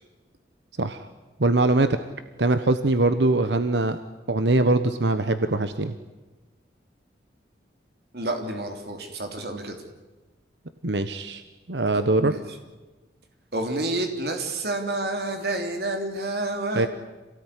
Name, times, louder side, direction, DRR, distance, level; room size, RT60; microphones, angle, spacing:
voice 1, 1.4-1.9 2.4-4.0 4.3-5.9 10.8-11.4 11.7-12.3 16.7-16.9, right 2 dB, 85° right, 10 dB, 1.2 m, -22 dB
voice 2, 8.1-9.8 12.2-12.4 13.5-16.9, right 2 dB, 65° right, 4 dB, 3.4 m, -29 dB
27.0 x 18.5 x 10.0 m, 1.2 s
head